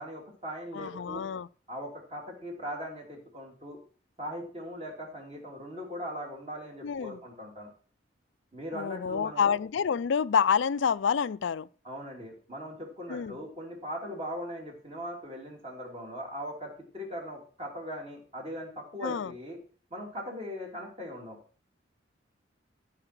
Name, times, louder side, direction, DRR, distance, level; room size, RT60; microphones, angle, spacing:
voice 1, 0.0-1.2 1.7-3.8 4.2-7.7 8.5-9.6 11.8-19.6 19.9-21.4, equal, 30° right, 3.1 m, -40 dB
voice 2, 0.7-1.5 6.8-7.2 8.7-11.7 13.1-13.4 19.0-19.3, left 7 dB, 80° left, 0.4 m, -28 dB
14.0 x 4.9 x 6.0 m
head